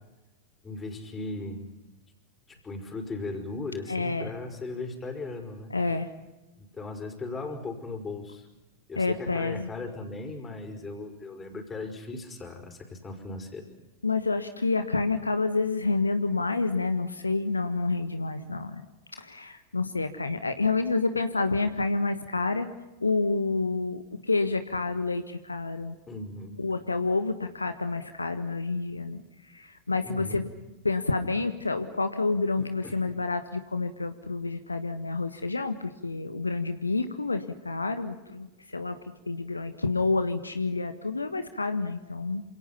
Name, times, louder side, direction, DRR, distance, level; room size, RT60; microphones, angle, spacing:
voice 1, 0.6-1.7 2.5-5.8 6.6-8.5 8.9-13.6 26.1-26.6 30.0-30.4 32.6-33.0, left 3 dB, 20° left, 5 dB, 5.3 m, -37 dB
voice 2, 3.9-4.3 5.7-6.1 8.9-9.7 14.0-22.7 23.0-26.0 26.6-30.5 30.8-39.0 39.3-42.4, left 3 dB, 80° left, 9 dB, 1.4 m, -29 dB
27.5 x 27.5 x 5.8 m, 1.0 s
figure-of-eight pair, 90°, 0 cm